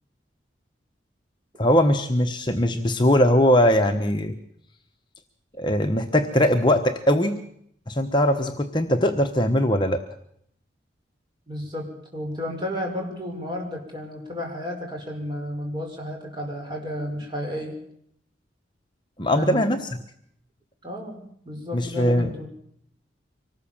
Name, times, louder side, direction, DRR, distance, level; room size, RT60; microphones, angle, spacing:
voice 1, 1.6-4.4 5.6-7.4 7.9-10.0 19.2-19.9 21.7-22.3, equal, 25° left, 5 dB, 1.1 m, -20 dB
voice 2, 11.5-17.8 19.3-19.8 20.8-21.2 21.4-22.5, left 1 dB, 25° right, 1 dB, 6.0 m, -32 dB
25.0 x 19.0 x 7.3 m, 0.70 s
head